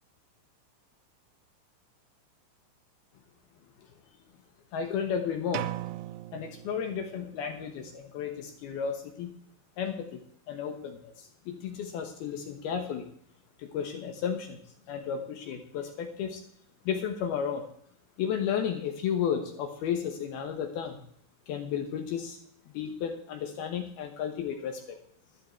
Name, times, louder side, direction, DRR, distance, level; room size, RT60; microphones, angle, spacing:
voice 1, 4.7-5.7 6.3-9.4 9.8-10.2 10.5-13.1 13.6-14.6 14.9-16.4 16.8-17.6 18.2-21.0 21.5-22.4 22.7-25.0, left 7 dB, 70° left, 5 dB, 2.6 m, -33 dB
sound 1, 5.5-7.4, right 15 dB, 80° right, 2.5 m, -38 dB
12.5 x 12.0 x 4.5 m, 0.64 s
omnidirectional pair, 5.5 m